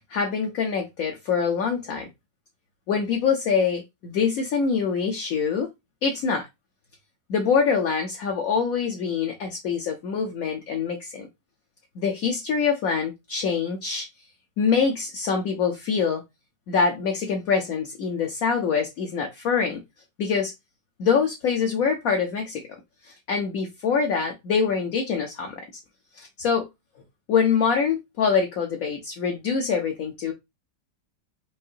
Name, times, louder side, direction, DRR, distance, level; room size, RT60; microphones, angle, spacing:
voice 1, 0.1-2.1 2.9-5.7 6.0-6.5 7.3-11.3 12.0-14.1 14.6-16.2 16.7-19.8 20.2-20.5 21.0-22.6 23.0-25.6 26.1-26.7 27.3-30.3, left 6 dB, 60° left, 1.1 m, -24 dB
5.5 x 2.6 x 2.6 m
omnidirectional pair, 1.8 m